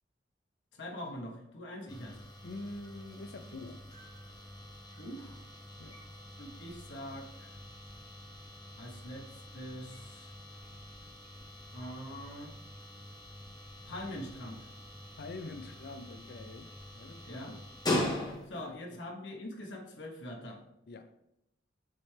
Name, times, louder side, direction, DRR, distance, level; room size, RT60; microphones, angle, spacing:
voice 1, 0.8-2.2 5.0-5.4 6.4-7.6 8.8-10.3 11.7-12.5 13.9-14.7 17.2-17.6 18.5-20.6, left 1 dB, 85° left, 1.0 m, -43 dB
sound 1, 1.9-18.7, left 1 dB, 25° left, 1.0 m, -42 dB
voice 2, 2.4-3.8 5.8-6.0 15.2-17.6 18.5-18.8 20.9-21.1, left 2 dB, 60° left, 0.5 m, -45 dB
8.6 x 3.3 x 3.3 m
head